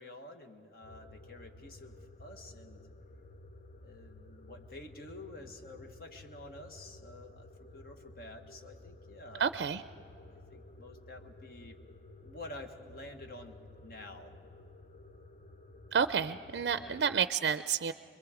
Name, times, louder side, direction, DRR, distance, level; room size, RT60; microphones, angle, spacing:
voice 1, 0.0-2.8 3.8-9.4 10.3-11.8 12.2-14.3 16.7-17.0, left 2 dB, 55° left, 5 dB, 1.4 m, -49 dB
sound 1, 0.8-17.2, left 2 dB, 40° left, 0.5 m, -53 dB
voice 2, 9.4-9.8 15.9-17.9, right 7 dB, 65° right, 12 dB, 0.4 m, -30 dB
26.0 x 22.0 x 4.9 m, 2.6 s
head